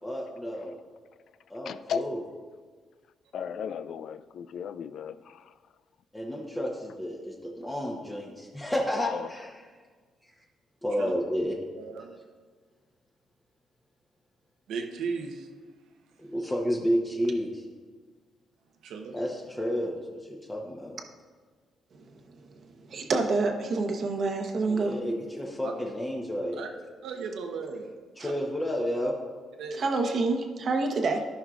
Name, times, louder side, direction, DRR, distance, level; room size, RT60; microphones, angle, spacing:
voice 1, 0.0-0.8 1.5-2.2 6.1-9.5 10.8-11.6 16.2-17.6 19.1-21.0 24.7-26.6 28.2-29.1, equal, 10° left, 0.9 m, -31 dB
voice 2, 1.6-2.1 3.3-5.5 9.0-9.3, left 8 dB, 65° left, 0.3 m, -35 dB
voice 3, 11.8-12.2 14.7-15.5 18.8-19.1 25.6-25.7 26.6-26.7 27.0-27.9 29.6-29.8, right 5 dB, 85° right, 0.9 m, -36 dB
voice 4, 22.1-25.0 29.7-31.3, right 3 dB, 50° right, 1.0 m, -28 dB
15.0 x 5.5 x 2.4 m
cardioid pair, 100°, 0 cm